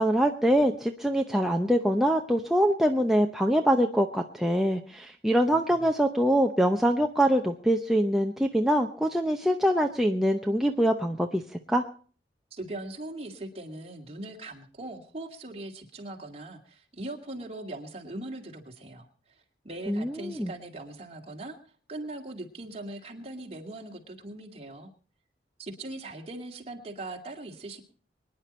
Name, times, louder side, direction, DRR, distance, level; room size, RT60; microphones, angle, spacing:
voice 1, 0.0-11.4 11.7-11.8 19.9-20.5, equal, ahead, 2 dB, 0.8 m, -24 dB
voice 2, 12.5-21.6 21.9-24.9 25.6-27.8, right 2 dB, 35° right, 2 dB, 2.4 m, -40 dB
24.0 x 10.0 x 4.4 m, 0.40 s
head